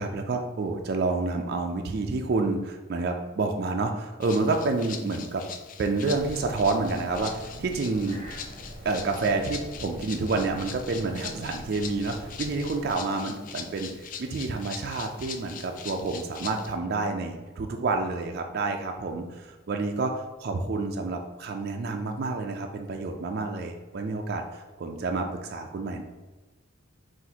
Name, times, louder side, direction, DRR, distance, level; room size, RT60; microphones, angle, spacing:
voice 1, 0.0-5.4 5.8-8.2 8.8-26.0, right 3 dB, 50° right, 4 dB, 0.3 m, -29 dB
Rattle (instrument), 4.2-16.7, left 7 dB, 40° left, 0.3 m, -42 dB
sound 1, 6.0-12.9, equal, 35° right, 0.9 m, -43 dB
5.9 x 2.5 x 2.8 m, 1.2 s
head